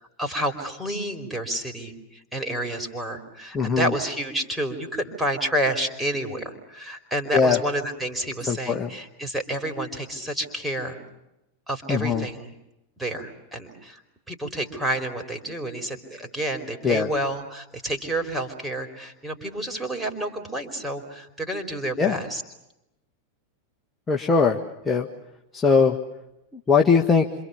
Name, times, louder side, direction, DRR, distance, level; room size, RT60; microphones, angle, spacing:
voice 1, 0.0-11.0 11.7-12.5 13.0-14.0 14.3-22.4, right 1 dB, 5° right, 3 dB, 4.5 m, -29 dB
voice 2, 3.5-3.9 7.3-7.6 8.5-8.9 11.9-12.3 16.8-17.1 22.0-22.2 24.1-24.6 24.9-25.1 25.5-26.0 26.7-27.3, left 5 dB, 15° left, 1 dB, 1.6 m, -20 dB
28.0 x 26.5 x 7.1 m, 0.90 s
figure-of-eight pair, 90°, 0 cm